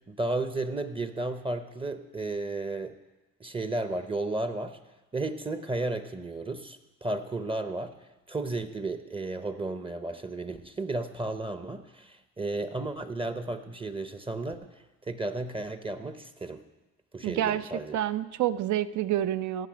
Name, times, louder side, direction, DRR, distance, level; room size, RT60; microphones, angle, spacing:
voice 1, 0.1-2.9 3.4-4.8 5.1-7.9 8.3-16.6 17.1-18.0, right 2 dB, 20° right, 9 dB, 0.6 m, -33 dB
voice 2, 17.2-19.7, right 12 dB, 75° right, 13 dB, 0.5 m, -28 dB
16.5 x 5.7 x 5.1 m, 1.1 s
cardioid pair, 90°, 30 cm